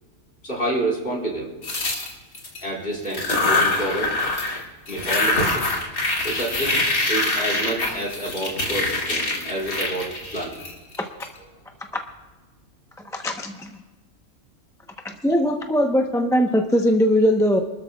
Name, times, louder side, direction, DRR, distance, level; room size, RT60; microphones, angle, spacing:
voice 1, 0.4-1.5 2.6-4.1 4.9-5.8 6.2-6.8 7.1-10.6, right 1 dB, 40° left, -3 dB, 4.2 m, -28 dB
sound 1, 1.6-2.6 3.1-4.6 4.9-11.2, left 2 dB, 85° left, 3.0 m, -24 dB
voice 2, 13.1-13.7 15.0-17.6, equal, 5° left, 3 dB, 0.7 m, -20 dB
27.5 x 13.0 x 2.3 m, 1.2 s
omnidirectional pair, 1.5 m